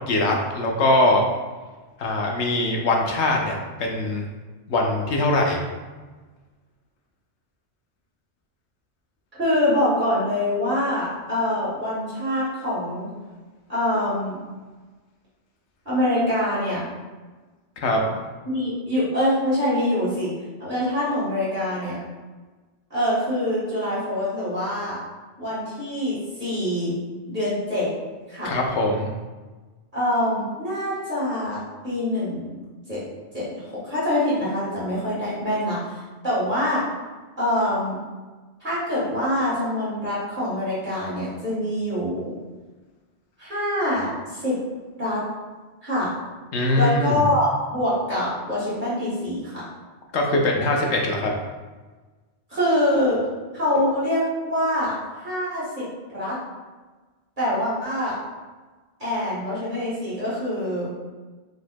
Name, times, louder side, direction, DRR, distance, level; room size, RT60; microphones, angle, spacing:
voice 1, 0.1-1.2 2.0-4.2 4.7-5.6 17.8-18.2 28.4-29.1 46.5-47.2 50.1-51.3, left 2 dB, 90° left, 0 dB, 1.1 m, -22 dB
voice 2, 9.3-13.1 13.7-14.4 15.8-16.9 18.4-20.3 20.6-22.0 22.9-25.0 25.4-27.0 27.3-27.9 28.3-28.5 29.9-32.6 32.9-33.0 33.3-36.8 37.4-38.0 38.6-42.3 43.4-44.6 44.9-45.2 45.8-46.1 46.7-49.6 52.5-53.2 53.5-56.4 57.4-58.1 59.0-60.9, left 1 dB, 50° right, -9 dB, 1.7 m, -25 dB
4.9 x 4.4 x 2.2 m, 1.3 s
omnidirectional pair, 1.1 m